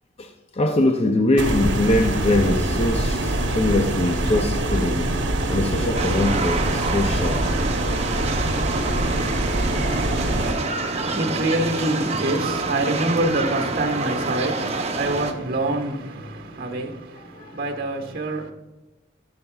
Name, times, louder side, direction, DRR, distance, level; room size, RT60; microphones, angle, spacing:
voice 1, 0.2-5.1 5.5-7.5 17.3-17.6, left 1 dB, 35° left, 0.5 m, -22 dB
sound 1, 1.4-10.5, right 1 dB, 80° right, 1.0 m, -24 dB
sound 2, 5.9-15.3, right 3 dB, 35° right, 0.8 m, -27 dB
voice 2, 10.9-18.5, right 1 dB, 55° right, 1.3 m, -26 dB
11.0 x 6.6 x 2.3 m
head